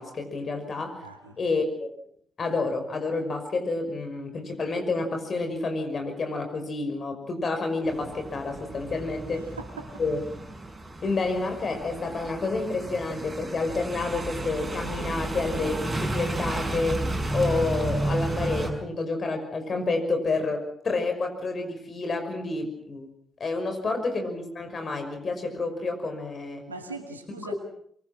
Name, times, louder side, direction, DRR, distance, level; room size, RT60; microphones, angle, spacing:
voice 1, 0.0-1.0 1.4-1.9 2.4-9.4 10.0-10.2 11.0-17.0 17.3-23.1 23.4-26.6, left 3 dB, 45° left, 5 dB, 5.9 m, -29 dB
voice 2, 1.0-1.4 9.6-9.9 26.7-27.5, right 3 dB, 90° right, 4 dB, 2.3 m, -39 dB
sound 1, 7.8-18.7, right 2 dB, 30° right, 6.1 m, -32 dB
23.5 x 23.5 x 6.0 m, 0.68 s
figure-of-eight pair, 40°, 0 cm